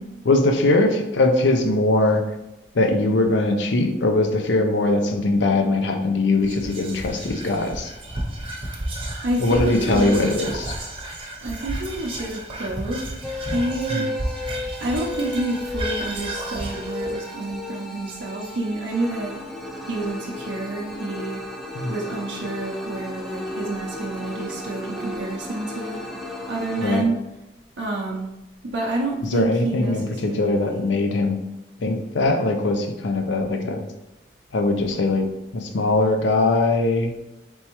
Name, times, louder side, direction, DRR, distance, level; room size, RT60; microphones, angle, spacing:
voice 1, 0.3-2.2 2.7-7.9 9.4-10.7 13.9-14.1 21.7-21.9 26.8-27.1 29.3-31.4 31.8-33.8 34.5-35.2 35.5-37.2, left 2 dB, 75° left, 5 dB, 0.5 m, -21 dB
Whispering, 6.4-18.9, right 1 dB, 30° right, 0.7 m, -32 dB
voice 2, 9.2-10.4 11.4-14.1 14.8-19.3 19.9-21.4 21.9-26.0 26.5-27.2 27.8-28.3 28.6-30.9, right 2 dB, 75° right, -2 dB, 0.5 m, -29 dB
sound 1, 13.2-27.0, left 1 dB, ahead, 0.3 m, -34 dB
4.2 x 3.5 x 2.9 m, 0.97 s
head